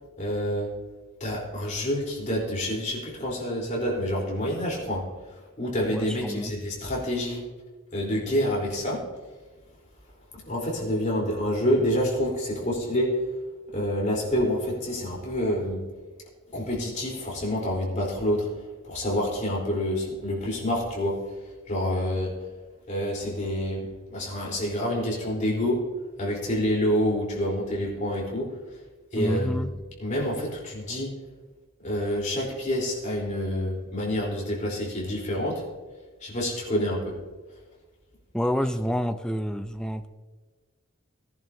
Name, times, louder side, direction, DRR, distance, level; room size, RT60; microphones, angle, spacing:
voice 1, 0.2-0.7 1.2-7.4 7.9-9.1 10.3-13.4 13.7-15.9 16.5-22.5 22.9-28.8 29.1-29.7 30.0-31.2 31.8-35.7 36.2-37.2, equal, 35° left, -3 dB, 3.9 m, -28 dB
voice 2, 5.9-6.5 29.2-29.7 38.3-40.1, equal, 5° left, 8 dB, 0.5 m, -28 dB
19.0 x 10.5 x 2.8 m, 1.3 s
head